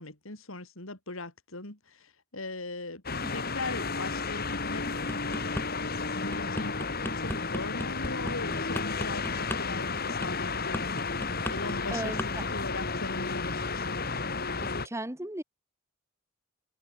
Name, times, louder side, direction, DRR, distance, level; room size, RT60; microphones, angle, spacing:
voice 1, 0.0-6.8 7.1-11.1 11.5-14.0, left 2 dB, 75° left, 4.2 m, -40 dB
sound 1, 3.0-14.9, left 4 dB, 45° left, 4.3 m, -32 dB
sound 2, 4.9-5.7 6.1-12.3 12.6-12.9, left 1 dB, 10° left, 2.1 m, -36 dB
voice 2, 11.9-12.4 14.6-15.4, right 1 dB, 15° right, 1.6 m, -37 dB
open air
head